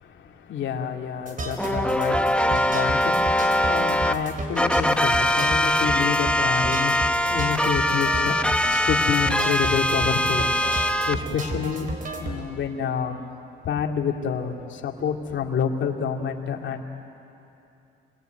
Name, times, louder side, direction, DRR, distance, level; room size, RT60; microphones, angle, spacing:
voice 1, 0.5-2.2 2.5-3.1 3.7-7.0 7.3-8.4 8.9-10.5 11.1-11.9 12.2-13.2 13.7-14.5 14.8-16.8, left 7 dB, 70° left, 2 dB, 2.5 m, -28 dB
sound 1, 1.3-12.4, right 2 dB, 45° right, 4.0 m, -33 dB
sound 2, 1.6-4.1 4.6-11.1, left 1 dB, 5° left, 0.9 m, -22 dB
28.0 x 23.0 x 9.2 m, 2.7 s
cardioid pair, 90°, 20 cm